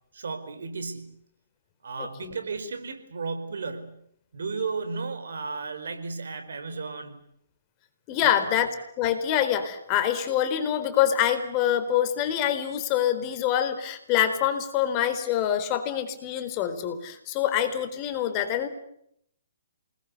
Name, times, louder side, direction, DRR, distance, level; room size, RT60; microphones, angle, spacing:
voice 1, 0.1-1.2 1.8-4.0 4.3-7.2 8.2-8.6, right 4 dB, 70° right, 8 dB, 4.6 m, -34 dB
voice 2, 8.1-8.7 9.0-18.7, left 10 dB, 30° left, 8 dB, 4.1 m, -25 dB
28.5 x 20.5 x 8.4 m, 0.72 s
figure-of-eight pair, 130°, 0 cm